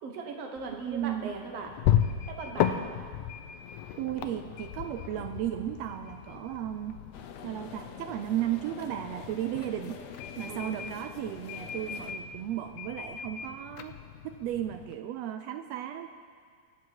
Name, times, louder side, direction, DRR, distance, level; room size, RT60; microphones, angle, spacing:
voice 1, 0.0-1.7 2.4-2.8 9.6-9.8 10.5-10.9, right 4 dB, 60° right, 3 dB, 2.2 m, -39 dB
sound 1, 0.6-15.0, left 10 dB, 85° left, 2.2 m, -35 dB
voice 2, 0.8-1.4 4.0-7.0 7.4-13.9 14.2-16.1, right 11 dB, 80° right, 8 dB, 1.5 m, -35 dB
sound 2, 7.1-12.1, left 6 dB, 70° left, 2.0 m, -46 dB
23.5 x 8.5 x 4.7 m, 2.1 s
omnidirectional pair, 3.5 m